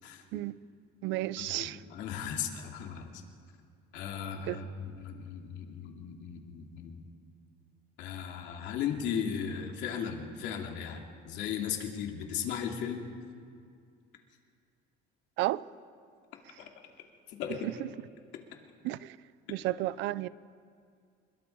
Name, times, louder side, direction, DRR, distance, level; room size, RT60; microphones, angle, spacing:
voice 1, 0.0-0.4 1.4-3.2 3.9-7.0 8.0-13.1 16.6-16.7 17.3-17.7, left 8 dB, 70° left, 2.7 m, -37 dB
voice 2, 1.0-1.8 4.5-4.6 15.4-15.6 18.8-19.2 19.5-20.3, right 16 dB, 70° right, 0.6 m, -32 dB
27.5 x 22.5 x 4.6 m
cardioid pair, 165°, 20 cm